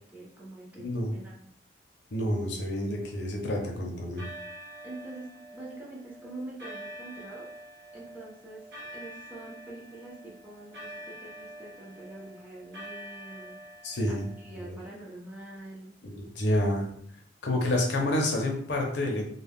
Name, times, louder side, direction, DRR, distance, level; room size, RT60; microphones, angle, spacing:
voice 1, 0.1-1.5 4.8-7.5 7.9-13.6 14.1-16.0, right 2 dB, 10° right, -5 dB, 0.6 m, -45 dB
voice 2, 0.8-1.1 2.1-4.2 13.8-14.2 16.0-16.9 17.4-19.3, left 1 dB, 75° left, 1 dB, 0.7 m, -28 dB
sound 1, 2.1-3.6 4.2-14.7, right 1 dB, 70° right, 0.7 m, -46 dB
2.3 x 2.1 x 3.4 m, 0.63 s
head